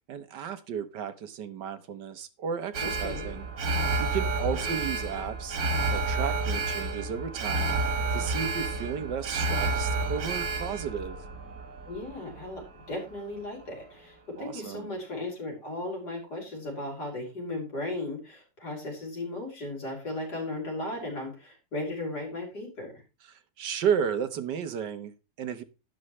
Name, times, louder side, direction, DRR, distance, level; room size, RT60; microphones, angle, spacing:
voice 1, 0.1-3.5 4.0-5.6 5.9-7.8 8.1-11.2 14.4-14.9 23.3-25.6, right 7 dB, 85° right, 10 dB, 1.7 m, -33 dB
Alarm, 2.7-13.0 13.3-13.4, right 3 dB, 60° right, 1.7 m, -30 dB
voice 2, 2.8-3.3 4.4-4.7 11.8-22.9, left 2 dB, 75° left, 0 dB, 5.4 m, -36 dB
12.0 x 10.0 x 3.2 m, 0.28 s
omnidirectional pair, 1.8 m